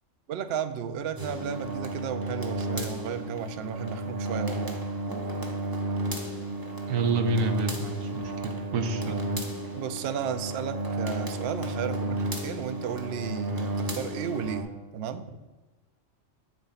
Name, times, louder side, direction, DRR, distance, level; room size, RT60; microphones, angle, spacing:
voice 1, 0.3-4.8 9.8-15.2, right 7 dB, 65° right, 9 dB, 0.7 m, -34 dB
sound 1, 1.2-14.6, right 1 dB, 20° right, 0.8 m, -32 dB
voice 2, 6.9-9.2, right 3 dB, 90° right, 7 dB, 1.2 m, -28 dB
7.2 x 4.0 x 5.6 m, 1.2 s
omnidirectional pair, 1.3 m